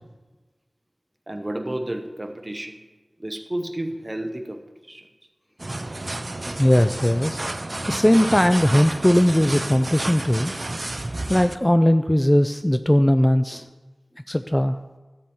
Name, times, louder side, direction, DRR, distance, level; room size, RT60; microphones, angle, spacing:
voice 1, 1.3-2.9 3.2-5.1, right 1 dB, 25° right, 6 dB, 1.0 m, -31 dB
sound 1, 5.6-11.6, right 2 dB, 40° right, 0.5 m, -30 dB
voice 2, 6.5-7.4 7.9-10.5 11.3-13.7 14.3-14.8, left 1 dB, 15° left, 9 dB, 0.4 m, -19 dB
13.0 x 4.3 x 7.8 m, 1.2 s
wide cardioid pair, 60°, 0 cm